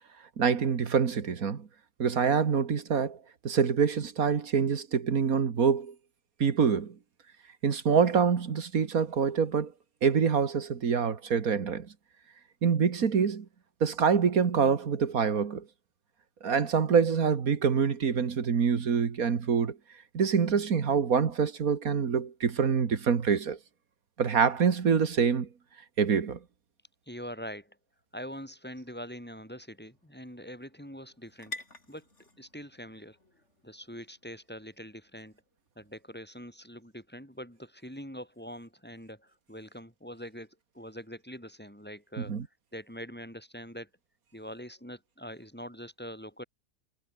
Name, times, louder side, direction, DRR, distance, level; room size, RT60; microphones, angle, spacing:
voice 1, 0.4-1.7 2.0-3.2 3.4-5.9 6.4-7.0 7.6-9.7 10.0-11.9 12.6-13.5 13.8-15.6 16.4-19.8 20.1-23.6 24.2-25.5 26.0-26.4 42.2-42.5, right 6 dB, 70° right, 2.1 m, -25 dB
voice 2, 27.1-27.8 28.1-31.6 31.9-32.1 32.4-33.2 33.6-35.4 35.8-42.4 42.7-43.9 44.3-46.4, equal, 5° left, 7.8 m, -43 dB
sound 1, 27.9-35.8, left 2 dB, 50° left, 5.0 m, -51 dB
omnidirectional pair, 1.6 m